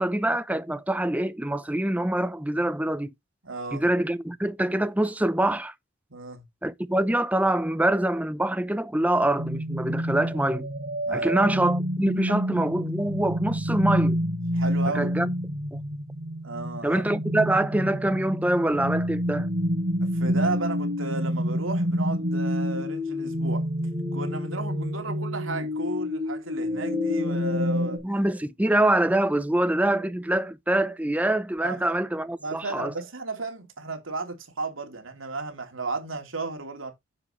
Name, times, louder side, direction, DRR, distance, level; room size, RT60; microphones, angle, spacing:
voice 1, 0.0-3.1 3.7-5.7 6.6-10.7 11.1-14.2 14.9-15.3 16.8-19.5 28.0-32.9, right 1 dB, 10° right, 0.7 m, -25 dB
voice 2, 3.4-3.9 6.1-6.4 11.1-11.3 14.5-15.1 16.4-17.0 20.1-23.7 24.1-28.0 31.6-31.8 32.4-36.9, right 3 dB, 85° right, 2.8 m, -34 dB
sound 1, 9.4-28.0, equal, 50° right, 4.6 m, -28 dB
10.0 x 7.4 x 3.1 m
head